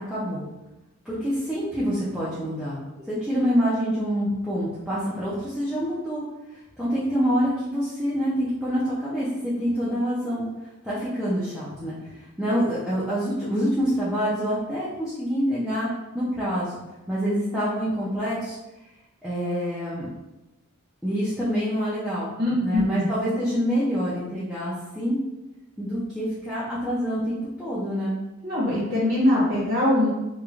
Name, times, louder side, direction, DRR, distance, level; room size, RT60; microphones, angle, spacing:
voice 1, 0.1-0.5 1.0-2.8 3.1-6.2 6.8-10.5 10.8-15.9 16.1-16.8 17.1-18.6 19.2-20.1 21.0-22.3 22.6-25.2 25.8-28.2, equal, ahead, -10 dB, 0.4 m, -26 dB
voice 2, 22.4-23.0 28.4-30.1, left 1 dB, 55° right, -8 dB, 1.0 m, -22 dB
3.0 x 2.2 x 2.4 m, 1.0 s
head